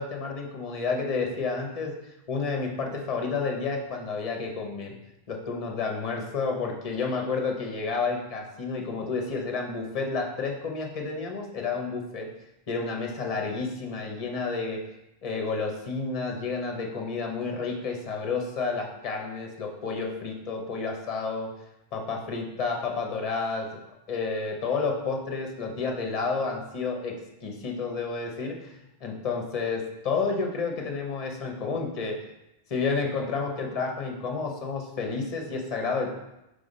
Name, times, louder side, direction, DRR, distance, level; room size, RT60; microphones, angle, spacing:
voice 1, 0.0-1.9 2.3-4.9 5.3-12.3 12.7-14.8 15.2-21.5 21.9-23.7 24.1-27.1 27.4-28.7 29.0-32.2 32.7-36.1, left 4 dB, 40° left, 2 dB, 0.9 m, -30 dB
5.5 x 3.6 x 5.2 m, 0.91 s
omnidirectional pair, 1.1 m